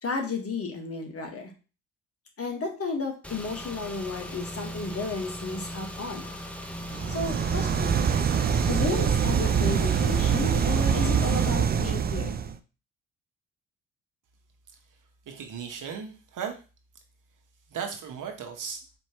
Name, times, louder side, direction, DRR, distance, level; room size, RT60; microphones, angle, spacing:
voice 1, 0.0-1.5 2.4-6.2 7.1-8.0 8.6-12.3, left 3 dB, 35° left, 2 dB, 1.3 m, -33 dB
Car / Engine, 3.2-11.5, equal, 5° left, 0.7 m, -39 dB
sound 1, 6.8-12.6, right 7 dB, 25° right, 0.4 m, -24 dB
voice 2, 15.3-16.6 17.7-18.8, right 7 dB, 55° right, 3 dB, 1.1 m, -36 dB
4.4 x 3.0 x 2.9 m, 0.33 s
hypercardioid pair, 50°, 38 cm